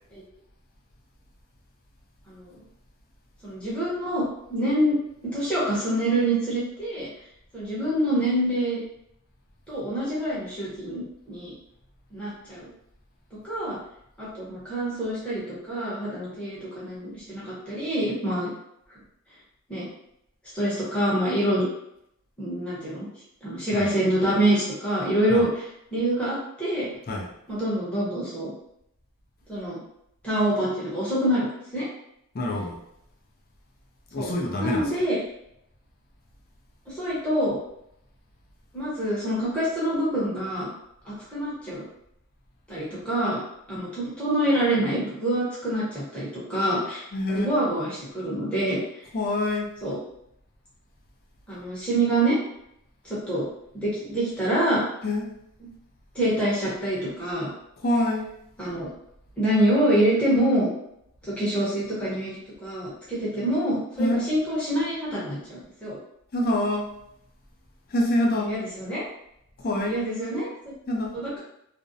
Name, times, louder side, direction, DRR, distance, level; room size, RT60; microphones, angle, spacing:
voice 1, 3.4-4.2 4.5-5.0 5.2-7.1 7.5-8.8 9.7-11.5 12.1-12.7 13.4-13.8 14.2-18.5 19.7-19.9 20.5-21.7 22.4-23.1 23.4-25.6 25.9-26.9 27.5-28.5 29.5-29.8 30.2-31.5 31.7-31.9 34.2-34.3 34.6-35.2 36.9-37.6 38.7-40.7 41.0-41.8 42.7-43.4 43.7-49.0 49.8-50.0 51.5-52.4 53.0-53.4 53.8-54.8 56.1-57.5 58.6-58.9 59.4-60.7 61.2-62.3 62.6-66.0 68.5-69.0 69.9-70.7 71.1-71.4, right 1 dB, 5° left, -10 dB, 0.8 m, -26 dB
voice 2, 32.3-32.8 34.1-34.9 47.1-47.5 49.1-49.7 55.0-55.3 57.8-58.3 64.0-64.3 66.3-66.9 67.9-68.6 69.6-70.0 70.9-71.2, left 1 dB, 45° left, -1 dB, 0.4 m, -26 dB
2.4 x 2.0 x 2.6 m, 0.77 s
head